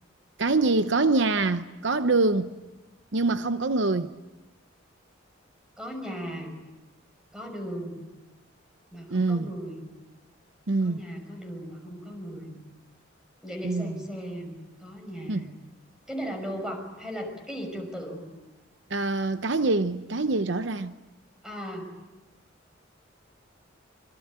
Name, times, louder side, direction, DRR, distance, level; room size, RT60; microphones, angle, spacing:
voice 1, 0.4-2.5 3.1-4.1 9.1-9.5 10.7-11.0 13.6-14.0 15.3-15.4 18.9-20.9, right 3 dB, 65° right, 0.8 m, -25 dB
voice 2, 5.8-6.5 7.3-8.0 8.9-9.8 10.8-12.5 13.4-15.5 16.1-18.2 21.4-21.9, equal, 5° right, 6.0 m, -37 dB
25.5 x 25.0 x 8.8 m
head